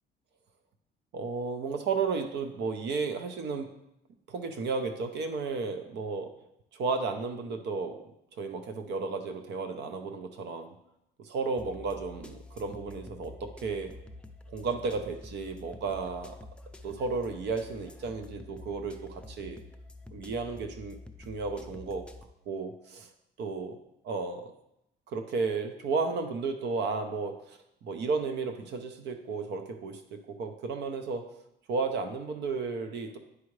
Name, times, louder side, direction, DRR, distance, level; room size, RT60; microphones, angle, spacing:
voice 1, 1.1-3.7 4.3-6.3 6.7-8.0 8.4-10.7 11.2-13.9 14.5-16.4 16.8-19.6 20.1-22.0 22.5-23.1 23.4-23.8 24.0-24.5 25.1-31.2 31.7-33.2, right 4 dB, 70° right, 7 dB, 0.7 m, -33 dB
sound 1, 11.6-22.2, left 2 dB, 5° left, 0.4 m, -48 dB
9.6 x 4.8 x 3.2 m, 0.83 s
cardioid pair, 135°, 18 cm